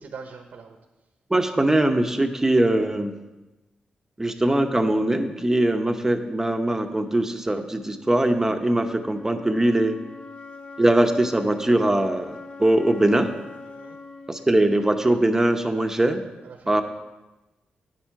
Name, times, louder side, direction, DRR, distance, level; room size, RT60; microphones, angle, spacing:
voice 1, 0.0-0.8 13.7-14.0 16.4-16.8, right 5 dB, 75° right, 5 dB, 1.0 m, -42 dB
voice 2, 1.3-3.1 4.2-10.0 10.8-13.3 14.3-16.2 16.7-16.8, right 1 dB, 15° right, 6 dB, 0.8 m, -21 dB
sound 1, 7.7-15.7, left 3 dB, 50° left, 1.3 m, -43 dB
9.9 x 8.7 x 4.6 m, 1.1 s
cardioid pair, 80°, 3 cm